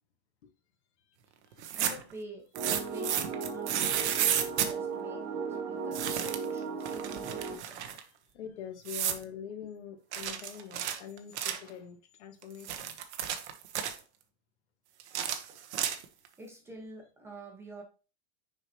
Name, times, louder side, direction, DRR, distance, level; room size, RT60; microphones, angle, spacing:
sound 1, 1.5-2.1 2.6-4.7 5.9-6.5 6.8-8.0 8.9-9.2 10.1-11.7 12.4-14.0 15.0-16.3, right 10 dB, 90° right, 1.2 m, -32 dB
voice 1, 1.7-2.5 2.9-8.0 16.4-17.8, right 2 dB, 5° right, 1.1 m, -48 dB
sound 2, 2.5-7.6, right 5 dB, 35° right, 1.0 m, -36 dB
voice 2, 7.9-13.0, left 8 dB, 85° left, 1.7 m, -45 dB
6.6 x 4.9 x 2.9 m
supercardioid pair, 170°, 33 cm